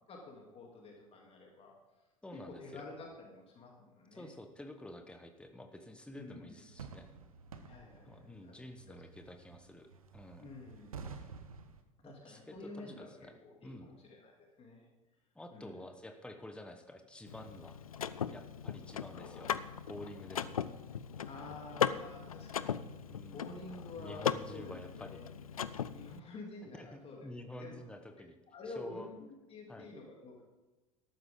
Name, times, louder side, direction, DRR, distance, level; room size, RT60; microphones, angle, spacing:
voice 1, 0.1-1.7 2.3-4.3 6.1-6.6 7.7-8.1 8.4-8.6 8.9-9.0 10.4-11.1 12.0-14.9 15.5-15.8 18.8-18.9 19.1-19.5 21.2-22.9 23.3-25.3 25.9-27.3 27.6-27.7 28.5-30.4, left 2 dB, 35° left, -1 dB, 3.1 m, -50 dB
voice 2, 2.2-2.9 4.1-7.1 8.0-10.5 12.0-13.4 13.6-13.9 15.3-17.8 18.3-19.5 19.9-20.6 23.1-23.5 24.0-25.2 26.8-28.4 28.6-29.1 29.7-29.9, left 1 dB, 5° left, 6 dB, 1.2 m, -50 dB
sound 1, 6.7-11.8, right 5 dB, 80° right, 1.0 m, -51 dB
Car / Mechanisms, 17.3-26.2, left 8 dB, 80° left, 0.5 m, -38 dB
13.5 x 12.0 x 3.9 m, 1.1 s
figure-of-eight pair, 70°, 18 cm